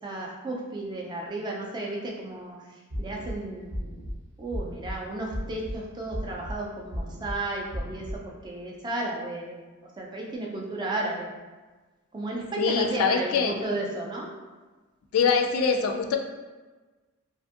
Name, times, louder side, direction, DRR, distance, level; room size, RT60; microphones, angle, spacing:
voice 1, 0.0-2.6 3.0-3.7 4.4-9.6 10.0-11.3 12.1-14.3, right 2 dB, 20° right, -2 dB, 0.3 m, -33 dB
sound 1, 2.9-3.3 3.7-4.1 4.5-4.9 5.3-5.7 6.1-6.5 6.9-7.3 7.7-8.1, equal, 55° right, 0.7 m, -34 dB
voice 2, 12.6-13.6 15.1-16.2, left 5 dB, 75° left, 5 dB, 0.3 m, -23 dB
2.6 x 2.5 x 2.4 m, 1.3 s
head